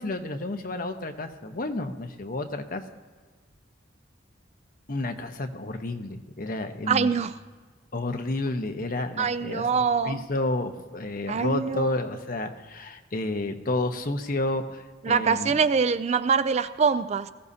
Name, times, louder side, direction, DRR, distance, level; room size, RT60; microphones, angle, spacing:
voice 1, 0.0-2.8 4.9-7.1 7.9-15.6, left 2 dB, 45° left, 5 dB, 1.0 m, -31 dB
voice 2, 6.9-7.3 9.2-10.2 11.3-11.9 15.0-17.3, right 5 dB, 35° right, 13 dB, 0.4 m, -24 dB
20.0 x 15.0 x 2.8 m, 1.4 s
head